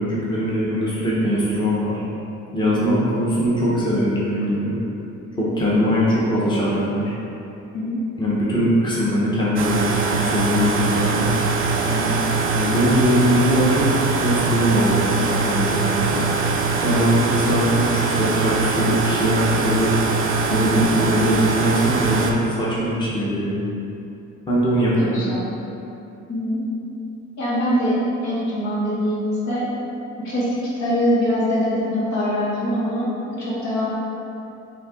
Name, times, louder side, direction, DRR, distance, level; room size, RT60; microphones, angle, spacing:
voice 1, 0.0-2.0 2.5-4.7 5.4-7.1 8.2-11.3 12.5-16.2 16.8-19.9 20.5-23.6 24.5-25.2, equal, 15° left, -8 dB, 0.9 m, -21 dB
voice 2, 7.7-8.0 11.9-12.2 25.0-25.5 26.3-26.6 27.4-28.0 28.2-29.7 30.2-30.5 30.8-33.9, equal, 65° left, -8 dB, 1.5 m, -23 dB
sound 1, 9.6-22.3, right 4 dB, 45° right, 0.5 m, -22 dB
4.2 x 2.7 x 3.6 m, 2.8 s
cardioid pair, 90°, 31 cm